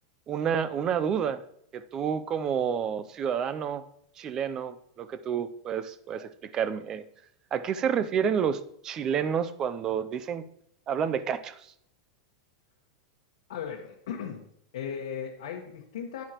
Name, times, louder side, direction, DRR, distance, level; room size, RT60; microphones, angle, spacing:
voice 1, 0.3-1.4 1.7-3.8 4.2-7.0 7.5-10.4 10.9-11.6, right 7 dB, 20° right, 13 dB, 0.4 m, -29 dB
voice 2, 13.5-14.4 14.7-16.2, left 7 dB, 80° left, -1 dB, 1.3 m, -36 dB
11.0 x 9.3 x 2.9 m, 0.71 s
supercardioid pair, 180°, 3 cm